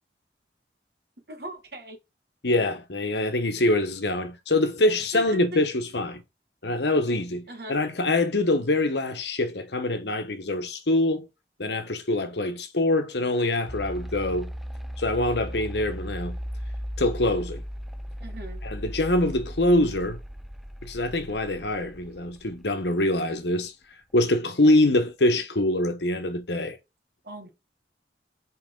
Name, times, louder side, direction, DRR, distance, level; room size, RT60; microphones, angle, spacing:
voice 1, 1.3-2.0 5.1-5.6 7.5-7.8 18.2-18.6 27.2-27.5, right 1 dB, 65° right, 1.8 m, -38 dB
voice 2, 2.4-6.2 6.6-11.3 11.6-14.5 15.0-16.4 17.0-17.6 18.6-20.2 20.8-23.7 24.1-26.8, left 1 dB, 80° left, 1.2 m, -24 dB
sound 1, 13.7-22.8, equal, ahead, 0.3 m, -37 dB
5.9 x 4.9 x 3.7 m
head